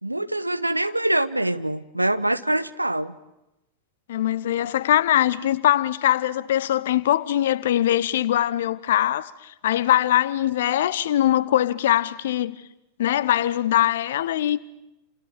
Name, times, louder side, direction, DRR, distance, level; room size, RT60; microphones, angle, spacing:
voice 1, 0.0-3.2, right 1 dB, 85° right, 1.1 m, -24 dB
voice 2, 4.1-12.6 13.0-14.6, left 12 dB, 60° left, 1.0 m, -22 dB
29.5 x 28.0 x 7.2 m
figure-of-eight pair, 90°, 0 cm